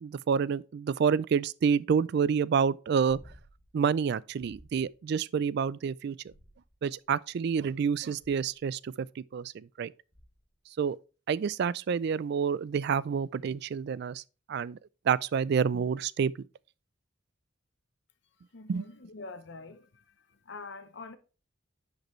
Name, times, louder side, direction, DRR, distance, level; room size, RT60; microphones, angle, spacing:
voice 1, 0.0-3.2 3.7-6.2 6.8-9.9 10.8-11.0 11.3-14.2 14.5-14.8 15.1-16.3 18.7-18.8, right 6 dB, 55° right, 0.3 m, -28 dB
sound 1, 3.1-3.7 4.4-4.9 6.2-7.0 8.2-8.7 10.1-10.6 12.9-13.0, equal, 20° left, 3.8 m, -56 dB
voice 2, 18.5-20.0 20.5-21.2, left 3 dB, 60° left, 0.8 m, -45 dB
10.5 x 5.2 x 3.1 m
head